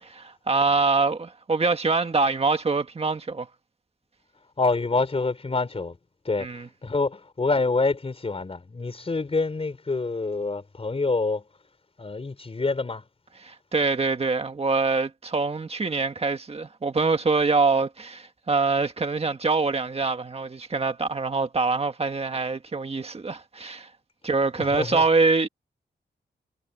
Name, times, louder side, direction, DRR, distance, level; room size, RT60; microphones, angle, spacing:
voice 1, 0.0-3.5 6.4-6.7 13.4-23.9 24.2-25.5, right 4 dB, 35° right, 1.7 m, -24 dB
voice 2, 4.6-6.0 6.2-6.5 6.8-11.4 12.0-13.0 24.6-25.0, left 3 dB, 35° left, 4.2 m, -26 dB
wide cardioid pair, 135°, 18 cm